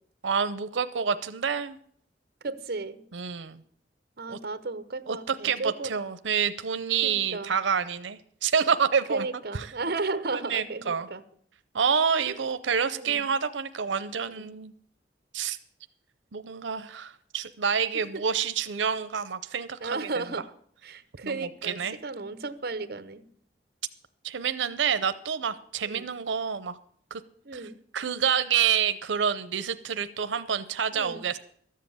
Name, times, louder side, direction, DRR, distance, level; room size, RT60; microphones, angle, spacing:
voice 1, 0.2-1.8 3.1-3.6 4.3-4.4 5.1-9.3 9.5-9.7 10.3-11.1 11.7-14.7 15.3-15.6 16.3-20.1 21.2-22.0 24.2-26.7 27.1-27.2 27.5-31.4, right 7 dB, 90° right, 0.6 m, -28 dB
voice 2, 2.4-3.0 4.2-6.0 7.0-7.5 9.1-11.2 12.3-12.4 12.9-13.3 14.3-14.5 17.9-18.2 19.8-20.5 20.8-23.2 25.8-26.1 27.4-27.8 30.9-31.2, right 3 dB, 55° right, 0.8 m, -34 dB
13.0 x 7.6 x 8.4 m
head